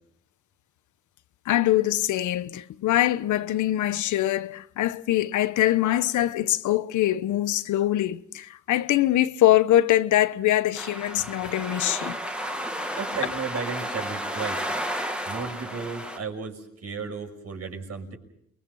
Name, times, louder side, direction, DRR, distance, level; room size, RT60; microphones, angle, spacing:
voice 1, 1.4-12.2, left 13 dB, 75° left, 1.1 m, -23 dB
sound 1, 10.8-16.2, equal, 5° right, 2.1 m, -32 dB
voice 2, 13.0-14.6 15.3-18.2, right 5 dB, 55° right, 6.2 m, -34 dB
29.0 x 23.0 x 5.6 m
cardioid pair, 90°, 30 cm